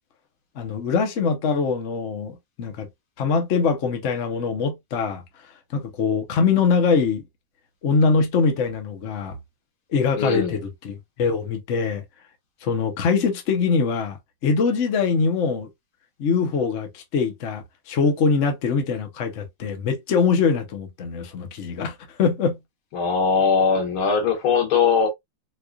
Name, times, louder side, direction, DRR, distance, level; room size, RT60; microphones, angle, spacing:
voice 1, 0.6-2.9 3.2-5.2 5.7-7.2 7.8-9.4 9.9-12.0 12.6-14.2 14.4-15.7 16.2-22.5, left 5 dB, 55° left, 0.9 m, -23 dB
voice 2, 10.2-10.6 22.9-25.1, left 5 dB, 80° left, 2.1 m, -20 dB
4.7 x 2.4 x 2.4 m
omnidirectional pair, 2.2 m